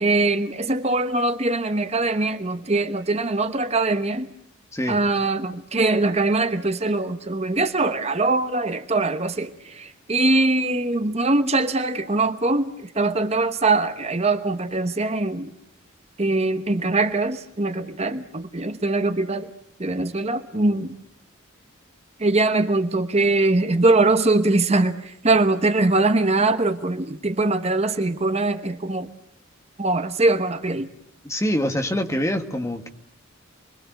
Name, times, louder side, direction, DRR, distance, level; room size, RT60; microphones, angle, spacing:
voice 1, 0.0-4.3 4.9-15.5 16.2-19.5 19.8-20.9 22.2-29.1 29.8-30.9, right 2 dB, 30° right, 9 dB, 1.0 m, -22 dB
voice 2, 31.2-32.9, equal, 15° left, 5 dB, 1.9 m, -25 dB
29.0 x 22.5 x 8.0 m, 0.69 s
head